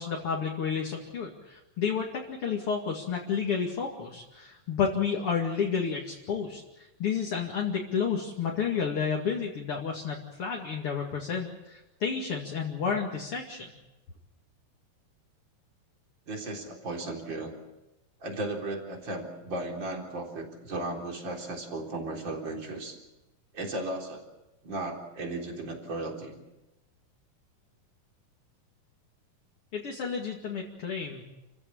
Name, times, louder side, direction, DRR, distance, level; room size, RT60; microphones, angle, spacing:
voice 1, 0.0-13.7 29.7-31.2, left 6 dB, 40° left, -1 dB, 2.8 m, -31 dB
voice 2, 16.3-17.5 18.2-23.0 23.5-24.2 24.6-26.4, right 2 dB, 30° right, 1 dB, 4.3 m, -35 dB
29.0 x 16.0 x 8.7 m, 0.99 s
omnidirectional pair, 4.1 m